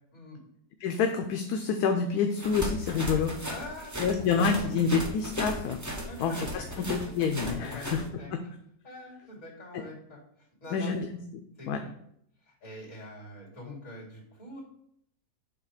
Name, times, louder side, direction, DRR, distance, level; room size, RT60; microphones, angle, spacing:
voice 1, 0.8-3.3 4.0-5.8 6.2-6.6 6.9-8.0 8.3-8.4 10.7-11.1 11.7-11.8, left 6 dB, 80° left, 5 dB, 1.1 m, -27 dB
sound 1, 2.3-8.0, right 1 dB, 15° right, 0.6 m, -36 dB
voice 2, 3.4-4.7 6.1-7.1 7.6-7.9 8.2-8.3 8.8-10.2 10.6-10.9 11.6-11.9 12.5-14.6, left 2 dB, 55° left, -5 dB, 3.1 m, -44 dB
7.4 x 2.9 x 4.8 m, 0.71 s
omnidirectional pair, 1.6 m